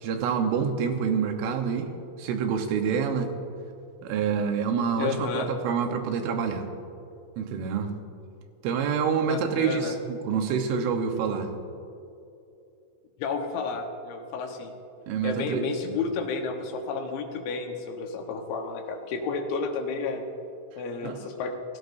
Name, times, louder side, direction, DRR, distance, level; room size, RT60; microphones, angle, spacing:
voice 1, 0.0-1.9 2.2-3.3 4.0-6.7 7.4-7.9 8.6-11.5 15.1-16.0 21.0-21.2, right 6 dB, 85° right, 5 dB, 3.6 m, -27 dB
voice 2, 5.0-5.5 9.3-9.9 13.2-14.7 15.2-20.2 20.8-21.5, left 4 dB, 75° left, 3 dB, 3.5 m, -31 dB
28.5 x 16.5 x 2.7 m, 2.7 s
omnidirectional pair, 5.5 m